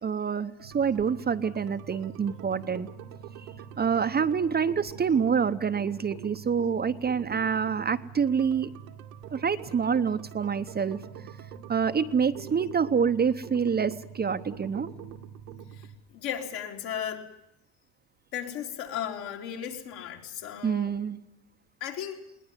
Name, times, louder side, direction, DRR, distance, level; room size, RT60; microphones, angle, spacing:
voice 1, 0.0-2.9 3.8-8.7 9.3-11.0 11.7-14.9 20.6-21.2, right 6 dB, 25° right, 9 dB, 0.9 m, -27 dB
sound 1, 0.6-16.0, right 8 dB, 90° right, 2.2 m, -44 dB
voice 2, 16.1-17.3 18.3-21.0 21.8-22.2, left 9 dB, 65° left, 1 dB, 4.2 m, -35 dB
21.0 x 18.5 x 9.7 m, 0.84 s
supercardioid pair, 90°, 40 cm